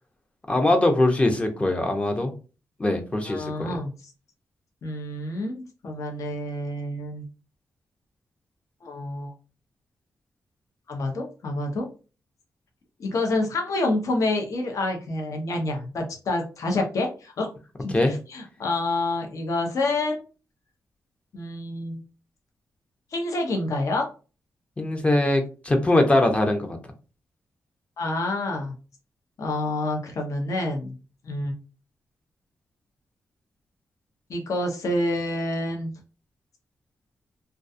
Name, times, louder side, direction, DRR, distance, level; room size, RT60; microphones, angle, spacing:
voice 1, 0.5-2.3 2.8-3.8 17.9-18.1 24.8-26.8, left 1 dB, 20° left, 5 dB, 0.5 m, -22 dB
voice 2, 3.3-3.9 4.8-7.2 8.8-9.3 10.9-11.9 13.0-17.5 17.8-20.2 21.3-22.0 23.1-24.1 28.0-28.7 29.4-30.9 31.2-31.5 34.3-35.9, left 2 dB, 60° left, 2 dB, 0.7 m, -28 dB
2.3 x 2.3 x 2.6 m, 0.34 s
cardioid pair, 110°, 6 cm